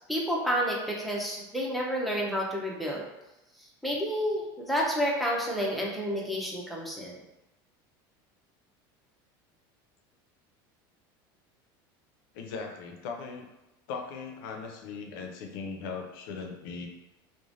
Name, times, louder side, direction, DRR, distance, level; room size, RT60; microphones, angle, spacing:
voice 1, 0.1-3.0 3.8-7.2, equal, ahead, -3 dB, 0.6 m, -30 dB
voice 2, 12.3-13.4 13.9-16.9, left 5 dB, 80° left, 2 dB, 0.5 m, -38 dB
3.1 x 2.1 x 2.5 m, 0.98 s
supercardioid pair, 125°, 12 cm